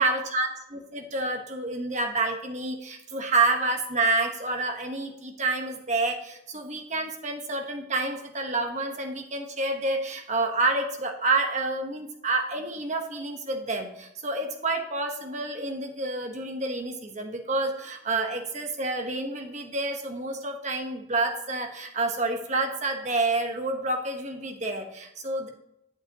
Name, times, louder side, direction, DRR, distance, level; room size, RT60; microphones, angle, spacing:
voice 1, 0.0-25.5, right 2 dB, 35° right, 4 dB, 1.1 m, -28 dB
8.7 x 7.7 x 2.9 m, 0.80 s
head